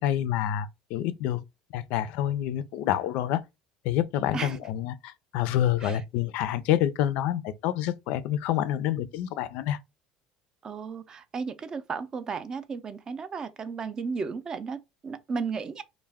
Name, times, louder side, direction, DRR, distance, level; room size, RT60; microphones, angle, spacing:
voice 1, 0.0-1.4 1.7-3.4 3.8-9.8, left 11 dB, 70° left, 0.4 m, -27 dB
voice 2, 10.6-15.8, right 5 dB, 30° right, 0.4 m, -34 dB
2.2 x 2.0 x 3.4 m
cardioid pair, 130°, 2 cm